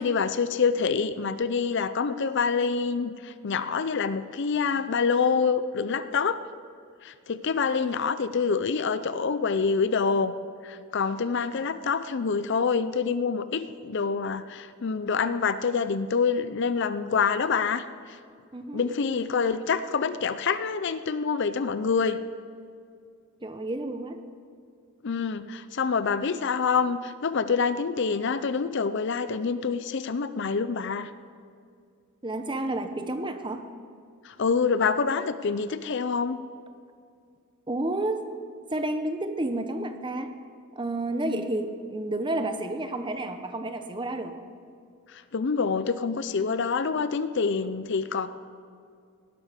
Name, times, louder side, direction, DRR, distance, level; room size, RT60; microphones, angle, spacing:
voice 1, 0.0-6.4 7.0-10.3 10.6-18.2 18.7-22.2 25.0-31.1 34.2-36.4 45.1-48.3, left 5 dB, 55° left, 13 dB, 0.5 m, -26 dB
voice 2, 18.5-18.9 23.4-24.2 32.2-33.7 37.7-38.3 38.7-40.3 40.8-44.3, right 1 dB, 20° right, 8 dB, 0.8 m, -30 dB
18.0 x 12.0 x 5.1 m, 2.3 s
head